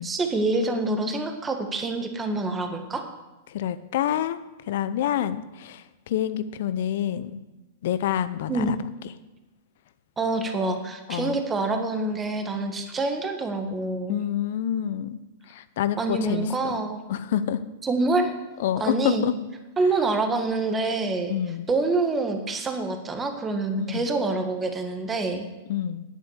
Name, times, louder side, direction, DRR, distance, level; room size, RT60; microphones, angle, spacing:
voice 1, 0.0-3.0 8.5-8.7 10.2-14.2 16.0-17.0 17.8-18.3 18.8-19.3 19.8-21.3 21.7-25.5, right 3 dB, 20° right, 5 dB, 1.6 m, -26 dB
voice 2, 3.5-4.4 4.7-7.4 7.8-8.8 9.0-9.1 11.1-11.4 14.1-15.2 15.5-16.8 17.1-17.6 18.6-19.3 21.3-21.7 23.8-24.1 25.7-26.0, left 11 dB, 65° left, 14 dB, 0.7 m, -27 dB
10.5 x 8.2 x 6.5 m, 1.1 s
hypercardioid pair, 105°, 0 cm